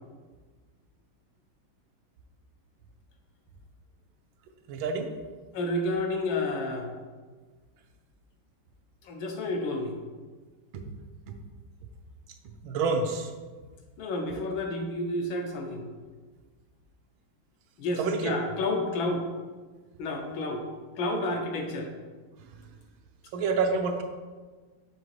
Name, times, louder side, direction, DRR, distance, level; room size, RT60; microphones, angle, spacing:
voice 1, 4.7-5.1 10.7-10.8 12.6-13.3 18.0-18.3 23.3-24.0, right 4 dB, 75° right, 5 dB, 1.3 m, -27 dB
voice 2, 5.5-6.9 9.0-9.9 14.0-15.9 17.8-19.2 20.0-20.6 21.0-21.9, left 2 dB, 75° left, 3 dB, 1.5 m, -30 dB
6.3 x 5.1 x 3.2 m, 1.4 s
omnidirectional pair, 2.3 m